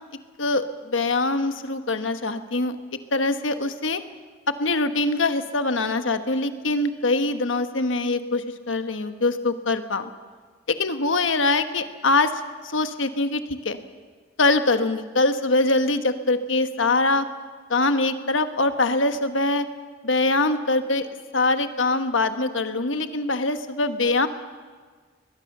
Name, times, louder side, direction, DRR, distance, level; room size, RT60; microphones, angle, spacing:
voice 1, 0.4-2.8 3.1-4.0 4.6-10.1 10.7-12.3 12.7-13.8 14.4-17.2 17.7-19.7 20.0-21.1 21.3-24.3, left 2 dB, 80° left, 9 dB, 1.4 m, -23 dB
21.5 x 20.5 x 6.7 m, 1.5 s
head